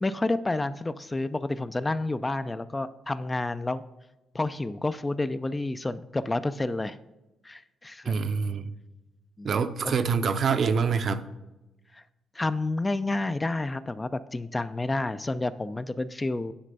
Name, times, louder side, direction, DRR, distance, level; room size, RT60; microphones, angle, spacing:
voice 1, 0.0-3.8 4.3-7.0 7.4-8.2 9.4-9.6 9.8-10.0 11.9-12.0 12.4-16.5, left 2 dB, 20° left, 13 dB, 0.3 m, -30 dB
voice 2, 8.1-8.7 9.4-11.3, right 5 dB, 55° right, 9 dB, 0.6 m, -26 dB
9.8 x 3.3 x 5.3 m, 1.0 s
cardioid pair, 90°, 0 cm